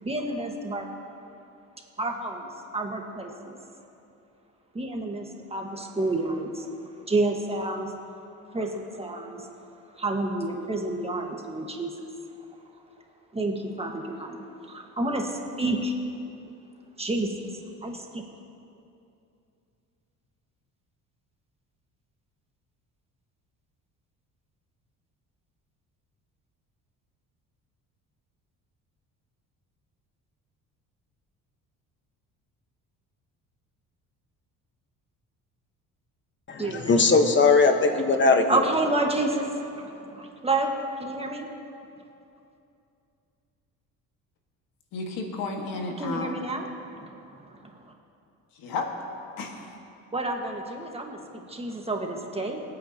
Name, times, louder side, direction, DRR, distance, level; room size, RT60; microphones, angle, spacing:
voice 1, 0.0-0.9 2.0-3.6 4.7-6.7 7.1-7.9 8.5-9.4 10.0-11.9 13.3-15.9 17.0-17.5 17.8-18.2 36.6-36.9 38.2-41.5 46.0-46.7 47.0-47.1 50.1-52.6, right 2 dB, 15° right, 1 dB, 1.5 m, -29 dB
voice 2, 36.5-38.6, left 4 dB, 35° left, 5 dB, 1.3 m, -20 dB
voice 3, 44.9-46.3 48.6-48.9 49.4-49.7, left 3 dB, 80° left, 2 dB, 1.8 m, -32 dB
26.0 x 8.9 x 2.9 m, 2.7 s
cardioid pair, 95°, 34 cm